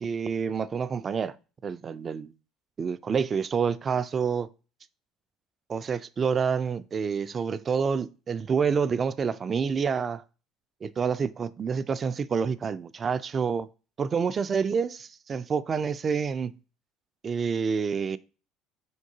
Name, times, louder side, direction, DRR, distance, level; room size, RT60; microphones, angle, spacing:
voice 1, 0.0-1.3 1.6-2.3 2.8-4.5 5.7-10.2 10.8-13.7 14.0-16.5 17.2-18.2, right 6 dB, 40° right, 0.3 m, -28 dB
4.5 x 3.7 x 2.7 m
hypercardioid pair, 70°, 0 cm